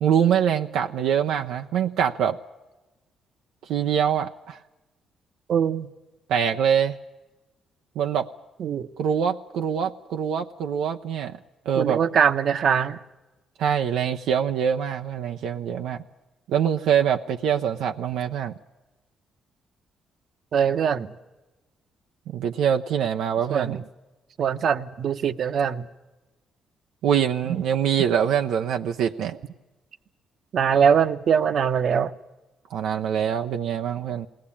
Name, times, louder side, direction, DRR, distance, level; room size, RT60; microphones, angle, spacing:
voice 1, 0.0-2.4 3.7-4.6 6.3-7.0 8.0-8.3 9.0-11.4 11.7-12.0 13.6-16.0 16.5-18.5 22.3-23.8 27.0-29.4 32.7-34.3, right 8 dB, 85° right, 4 dB, 0.7 m, -24 dB
voice 2, 5.5-5.9 8.6-8.9 11.8-13.0 20.5-21.1 23.5-23.8 24.4-25.9 30.5-32.1, right 7 dB, 60° right, 10 dB, 0.9 m, -22 dB
21.0 x 18.5 x 8.6 m, 1.1 s
cardioid pair, 90°, 0 cm